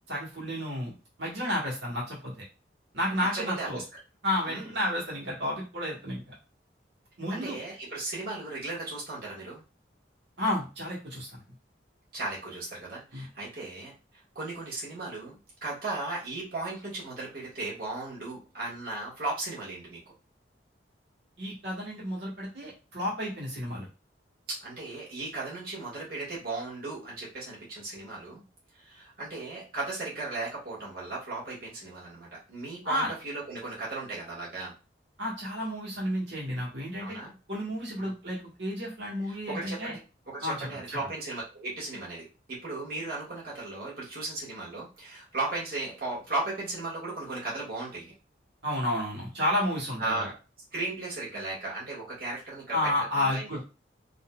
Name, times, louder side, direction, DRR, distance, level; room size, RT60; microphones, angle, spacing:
voice 1, 0.1-0.9 1.2-2.4 2.9-3.8 4.2-6.3 7.2-7.6 10.4-11.4 13.1-13.3 21.4-23.9 32.8-33.1 35.2-37.2 37.5-39.9 40.4-41.0 48.6-50.3 52.7-53.6, left 1 dB, 85° right, -5 dB, 1.4 m, -31 dB
voice 2, 3.3-3.8 4.5-4.7 7.3-9.6 12.1-20.1 24.5-28.4 28.7-34.7 37.0-37.3 38.0-38.1 39.3-40.0 40.3-48.1 50.0-50.3 50.7-53.5, right 2 dB, 55° right, -6 dB, 1.6 m, -36 dB
3.9 x 2.6 x 2.3 m, 0.31 s
head